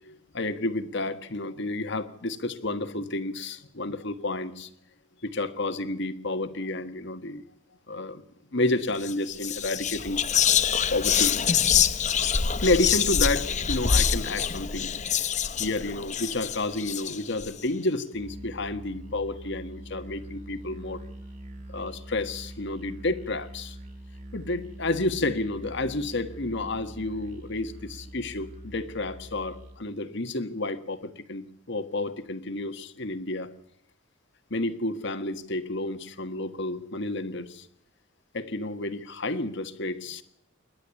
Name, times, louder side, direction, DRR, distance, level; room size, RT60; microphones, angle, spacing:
voice 1, 0.0-4.7 5.2-7.4 7.9-8.2 8.5-10.3 10.9-11.4 12.5-15.0 15.6-21.0 21.7-23.8 24.3-33.5 34.5-37.7 38.3-40.2, left 2 dB, 60° left, 9 dB, 1.6 m, -30 dB
Whispering, 8.9-9.1 9.4-17.5, left 8 dB, 35° left, 0.8 m, -25 dB
Musical instrument, 18.1-29.9, equal, 40° right, 5.4 m, -43 dB
27.5 x 12.0 x 8.4 m, 0.76 s
head